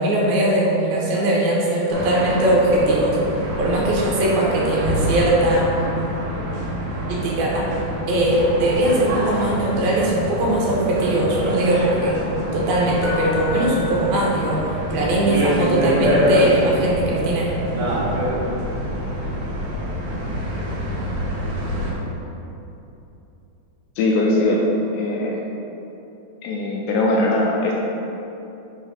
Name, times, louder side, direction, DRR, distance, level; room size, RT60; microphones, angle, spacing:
voice 1, 0.0-3.2 3.6-5.7 7.1-7.7 8.1-12.2 12.5-14.6 14.9-17.5, right 1 dB, 80° right, -3 dB, 2.6 m, -20 dB
sound 1, 1.9-21.9, equal, 65° right, 2.8 m, -26 dB
Keyboard (musical), 13.0-15.0 18.2-18.4, left 4 dB, 60° left, 1.4 m, -34 dB
voice 2, 24.0-24.6 24.9-25.4 26.4-27.8, left 2 dB, 80° left, -2 dB, 2.2 m, -20 dB
7.4 x 3.1 x 5.0 m, 2.9 s
omnidirectional pair, 4.5 m